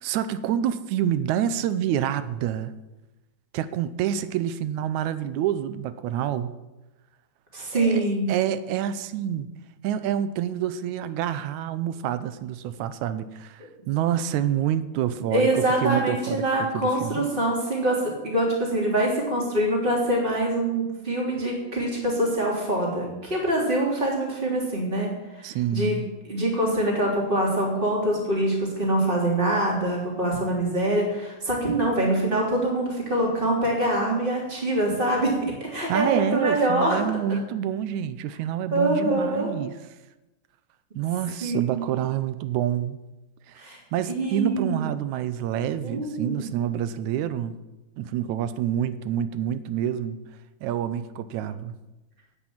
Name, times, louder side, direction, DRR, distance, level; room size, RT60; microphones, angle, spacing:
voice 1, 0.0-2.7 3.5-6.5 7.7-9.5 9.8-13.6 13.9-17.3 25.4-26.1 35.9-39.8 41.0-43.0 43.5-43.6 43.9-47.6 48.0-50.2 50.6-51.8, right 10 dB, 85° right, 13 dB, 2.0 m, -27 dB
voice 2, 7.5-8.4 15.3-35.3 35.6-37.0 38.7-39.5 41.4-42.0 43.6-43.8 44.1-44.8 45.8-46.5, right 1 dB, 15° right, -2 dB, 3.2 m, -24 dB
9.8 x 7.9 x 8.9 m, 1.0 s
omnidirectional pair, 3.4 m